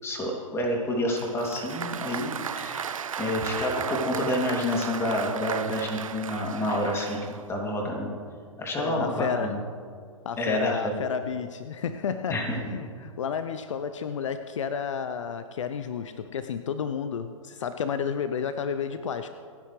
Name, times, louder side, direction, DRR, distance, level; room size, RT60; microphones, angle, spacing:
voice 1, 0.0-8.1 8.6-9.6 10.4-10.9 12.3-12.6, left 1 dB, 15° left, -1 dB, 2.8 m, -29 dB
Applause, 1.2-7.5, right 7 dB, 75° right, 0.6 m, -35 dB
voice 2, 8.8-9.5 10.2-12.4 12.7-19.3, left 7 dB, 65° left, 10 dB, 0.7 m, -31 dB
28.0 x 9.8 x 3.3 m, 2.1 s
figure-of-eight pair, 115°, 17 cm